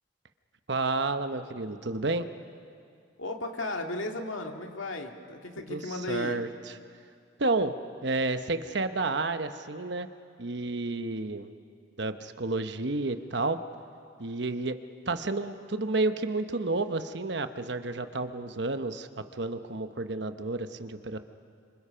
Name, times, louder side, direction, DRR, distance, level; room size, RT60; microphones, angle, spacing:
voice 1, 0.7-2.3 5.7-6.8 7.4-7.7 8.0-10.1 10.4-11.5 12.0-13.6 14.2-14.8 15.1-21.2, right 3 dB, 60° right, 9 dB, 1.0 m, -31 dB
voice 2, 3.2-6.4, left 2 dB, 90° left, 3 dB, 2.1 m, -35 dB
29.0 x 26.0 x 5.7 m, 2.3 s
head